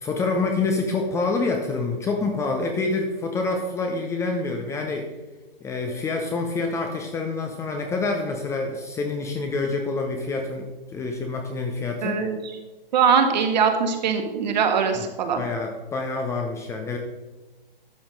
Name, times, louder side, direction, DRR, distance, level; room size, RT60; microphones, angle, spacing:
voice 1, 0.0-5.1 5.6-12.2 15.0-17.0, left 3 dB, 10° left, 3 dB, 0.6 m, -27 dB
voice 2, 12.0-12.4 12.9-15.4, right 6 dB, 45° right, 5 dB, 1.6 m, -21 dB
12.0 x 7.1 x 3.8 m, 1.2 s
figure-of-eight pair, 125°, 30 cm